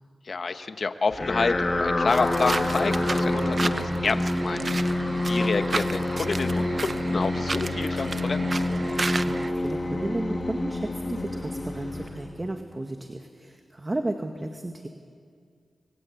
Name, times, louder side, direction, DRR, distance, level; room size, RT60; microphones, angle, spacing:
voice 1, 0.2-4.6 5.3-8.6, left 4 dB, 55° left, 9 dB, 1.4 m, -28 dB
sound 1, 1.1-12.6, left 2 dB, 35° left, 2.9 m, -27 dB
sound 2, 2.1-9.5, right 3 dB, 45° right, 0.9 m, -33 dB
voice 2, 9.2-14.9, right 2 dB, 25° right, 5 dB, 1.8 m, -33 dB
30.0 x 23.0 x 8.6 m, 2.2 s
cardioid pair, 65°, 0 cm